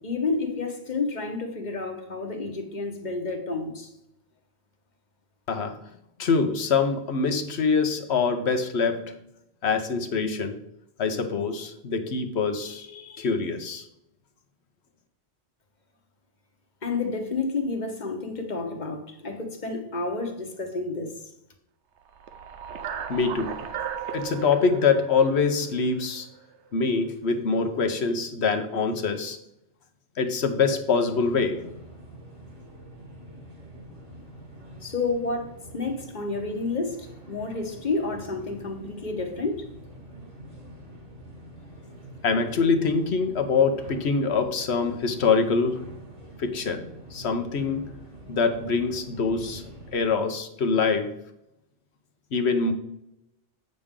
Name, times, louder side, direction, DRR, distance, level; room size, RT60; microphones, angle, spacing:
voice 1, 0.0-3.9 16.8-21.2 34.8-39.6, left 3 dB, 45° left, 1.2 m, -30 dB
voice 2, 5.5-5.8 6.2-9.2 9.6-10.6 11.0-13.8 23.1-23.6 24.1-26.3 26.7-29.4 30.2-31.7 42.2-45.9 46.4-46.8 47.1-48.0 48.3-49.6 49.9-51.1 52.3-52.7, left 5 dB, 70° left, 1.2 m, -24 dB
sound 1, 22.1-26.4, right 8 dB, 85° right, 1.0 m, -36 dB
sound 2, 31.1-50.1, right 1 dB, 35° right, 2.0 m, -45 dB
8.4 x 6.6 x 3.7 m
omnidirectional pair, 1.1 m